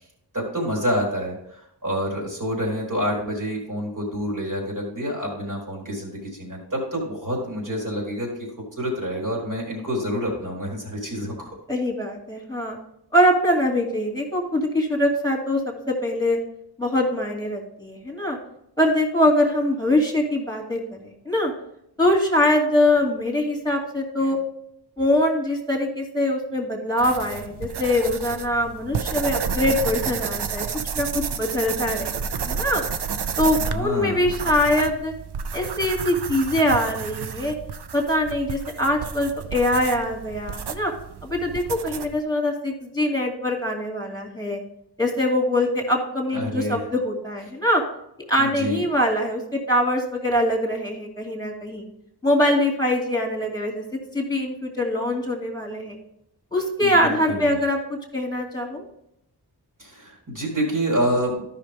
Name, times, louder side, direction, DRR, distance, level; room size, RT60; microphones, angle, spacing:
voice 1, 0.3-8.3 8.8-11.5 33.6-34.3 46.3-46.8 48.4-48.9 56.8-57.6 59.8-61.5, equal, 50° right, -3 dB, 3.9 m, -27 dB
voice 2, 11.7-12.8 13.1-16.4 16.8-18.4 18.8-21.5 22.0-24.4 25.0-30.7 31.0-32.8 33.4-35.1 35.5-37.5 37.9-40.9 41.2-44.6 45.0-47.8 48.3-51.8 52.2-53.8 54.1-56.0 56.5-58.8, left 1 dB, 10° left, 1 dB, 2.4 m, -23 dB
sound 1, 27.0-42.2, right 6 dB, 80° right, 0.7 m, -31 dB
13.0 x 5.8 x 3.5 m, 0.76 s
wide cardioid pair, 65°, 39 cm